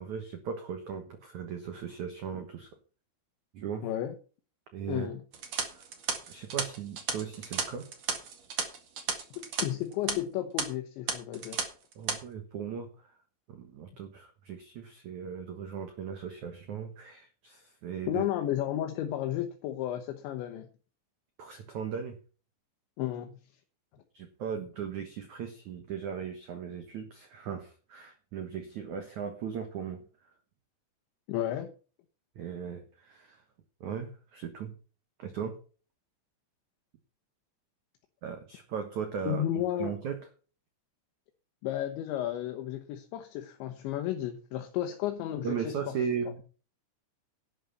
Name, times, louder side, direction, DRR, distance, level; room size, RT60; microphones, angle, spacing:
voice 1, 0.0-2.7 3.5-3.9 4.7-5.1 5.7-5.8 6.3-7.9 11.9-13.2 13.5-18.2 21.4-22.2 24.1-30.3 32.3-33.4 33.8-34.7 35.2-35.6 38.2-39.4 39.8-40.3 45.4-46.4, right 7 dB, 90° right, 7 dB, 1.6 m, -37 dB
voice 2, 3.8-4.1 4.9-5.2 9.4-11.6 18.1-20.7 23.0-23.4 31.3-31.7 39.3-39.9 41.6-45.6, left 12 dB, 75° left, 6 dB, 3.2 m, -33 dB
sound 1, 5.3-9.6 9.9-10.1 10.6-10.7 11.1-11.6 11.9-12.2, right 6 dB, 55° right, 2.1 m, -33 dB
11.5 x 9.6 x 5.5 m, 0.37 s
omnidirectional pair, 5.7 m